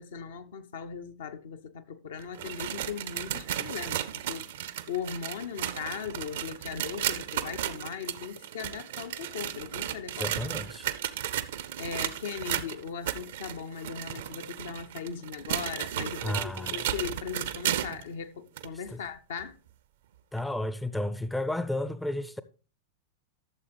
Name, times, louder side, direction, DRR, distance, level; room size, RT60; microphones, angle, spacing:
voice 1, 0.0-10.3 11.8-19.6, left 7 dB, 60° left, 0.7 m, -38 dB
sound 1, 2.2-18.1 18.6-18.7 19.4-19.5 20.4-20.5, right 11 dB, 60° right, 0.6 m, -34 dB
voice 2, 10.2-10.9 16.2-16.9 18.9-19.0 20.3-22.4, left 1 dB, 5° left, 0.5 m, -32 dB
12.5 x 7.1 x 3.4 m
figure-of-eight pair, 90°, 0 cm